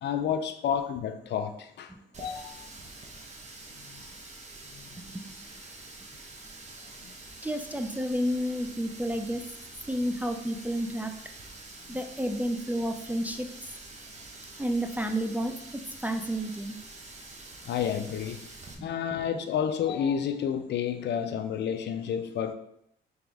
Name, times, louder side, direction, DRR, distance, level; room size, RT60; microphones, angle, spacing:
voice 1, 0.0-1.9 2.2-2.7 7.0-7.1 11.9-12.0 17.7-18.5 18.8-22.5, left 8 dB, 60° left, 8 dB, 0.5 m, -30 dB
Water tap faucet, 2.1-18.7, right 2 dB, 35° right, 0.8 m, -46 dB
voice 2, 7.4-9.4 9.9-11.1 11.9-13.5 14.6-16.8 18.8-18.9, equal, 10° right, 5 dB, 0.4 m, -31 dB
3.5 x 3.4 x 3.6 m, 0.74 s
cardioid pair, 90°, 20 cm